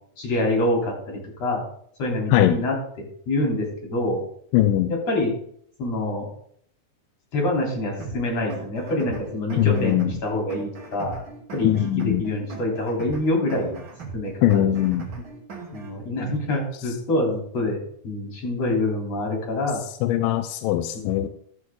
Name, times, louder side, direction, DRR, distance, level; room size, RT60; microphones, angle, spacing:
voice 1, 0.2-1.6 2.0-2.8 3.3-4.2 4.9-5.4 5.8-6.3 7.3-11.2 11.5-13.8 14.1-14.7 15.7-19.8 21.2-21.3, left 1 dB, 50° left, -1 dB, 4.5 m, -26 dB
voice 2, 4.5-4.9 9.6-10.1 11.6-12.2 14.4-15.1 20.0-21.3, left 13 dB, 90° left, 10 dB, 2.3 m, -21 dB
sound 1, 8.0-16.0, right 4 dB, 40° right, 2.3 m, -39 dB
12.5 x 7.9 x 3.8 m, 0.64 s
omnidirectional pair, 3.9 m